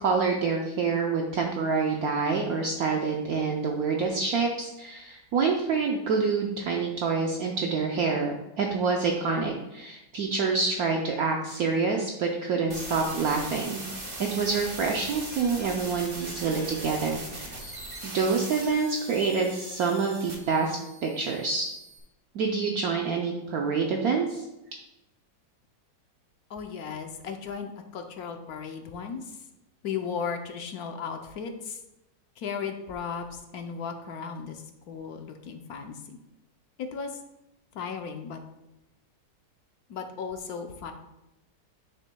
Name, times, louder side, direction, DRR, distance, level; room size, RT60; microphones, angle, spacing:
voice 1, 0.0-13.8 14.2-17.5 18.0-21.7 22.3-24.4, right 4 dB, 65° right, 0 dB, 1.1 m, -27 dB
sound 1, 12.7-22.0, right 1 dB, 35° right, 1.4 m, -40 dB
voice 2, 26.5-29.4 29.8-31.8 32.4-36.2 36.8-37.2 37.7-38.4 39.9-40.9, left 6 dB, 65° left, 5 dB, 1.1 m, -36 dB
9.0 x 7.1 x 2.2 m, 0.94 s
omnidirectional pair, 1.9 m